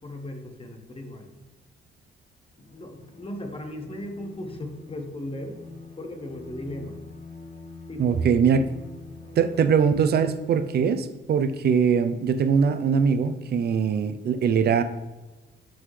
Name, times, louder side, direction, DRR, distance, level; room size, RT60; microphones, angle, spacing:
voice 1, 0.0-1.3 2.6-5.6 6.0-7.0 7.9-8.2 9.2-9.4, left 1 dB, 30° left, 4 dB, 1.3 m, -37 dB
Bowed string instrument, 2.6-11.1, left 2 dB, 65° left, 1.8 m, -45 dB
voice 2, 8.0-8.7 9.4-14.8, right 6 dB, 55° right, 10 dB, 0.6 m, -22 dB
11.0 x 3.9 x 3.3 m, 1.1 s
cardioid pair, 90°, 20 cm